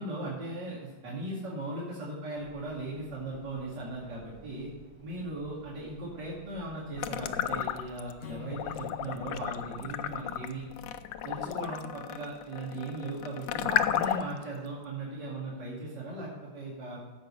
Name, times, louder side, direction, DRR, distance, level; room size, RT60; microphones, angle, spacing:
voice 1, 0.0-4.7 5.0-10.6 11.2-17.0, right 2 dB, 75° right, -6 dB, 3.1 m, -38 dB
sound 1, 2.3-11.5, equal, 40° left, 4.6 m, -56 dB
sound 2, 7.0-8.1 8.5-14.4, left 10 dB, 90° left, 1.3 m, -32 dB
Acoustic guitar / Strum, 8.2-11.5, left 6 dB, 70° left, 0.7 m, -48 dB
15.5 x 5.5 x 5.4 m, 1.4 s
omnidirectional pair, 1.9 m